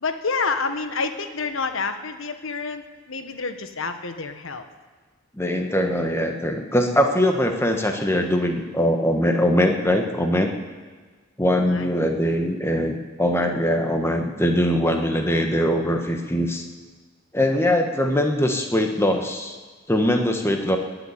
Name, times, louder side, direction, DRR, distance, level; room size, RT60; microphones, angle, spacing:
voice 1, 0.0-4.6 11.5-11.9, left 4 dB, 70° left, 8 dB, 1.2 m, -28 dB
voice 2, 5.4-10.6 11.4-16.6 17.3-19.6 19.9-20.8, equal, 10° left, 4 dB, 1.2 m, -22 dB
19.5 x 7.0 x 9.7 m, 1.4 s
head